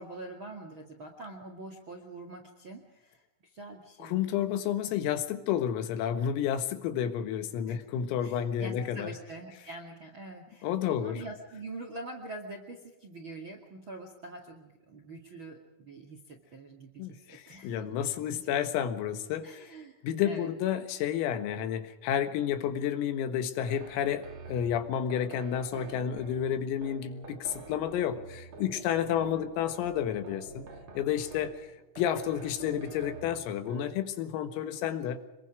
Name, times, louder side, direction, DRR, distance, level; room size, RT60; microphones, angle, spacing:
voice 1, 0.0-4.5 7.7-7.8 8.2-17.9 18.2-18.5 19.4-20.5 29.1-29.5, right 2 dB, 45° right, 3 dB, 1.6 m, -45 dB
voice 2, 4.0-9.1 10.6-11.2 17.0-19.7 20.0-30.7 31.0-31.7 32.0-35.2, left 9 dB, 85° left, 9 dB, 4.3 m, -31 dB
sound 1, 23.6-34.1, right 5 dB, 80° right, 1.2 m, -47 dB
26.5 x 22.5 x 5.0 m, 1.0 s
omnidirectional pair, 5.9 m